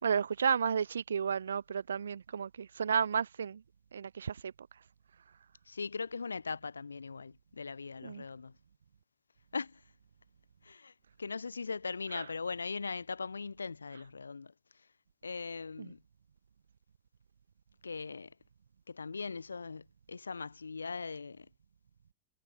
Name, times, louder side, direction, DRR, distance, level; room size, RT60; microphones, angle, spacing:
voice 1, 0.0-3.6 3.9-4.5 8.0-8.2 12.1-12.2 15.8-15.9, right 7 dB, 70° right, 4.6 m, -32 dB
voice 2, 5.7-8.5 9.5-9.8 10.6-10.9 11.2-14.5 15.2-16.0 17.8-18.3 18.9-21.5, left 4 dB, 75° left, 2.5 m, -40 dB
figure-of-eight pair, 90°, 0 cm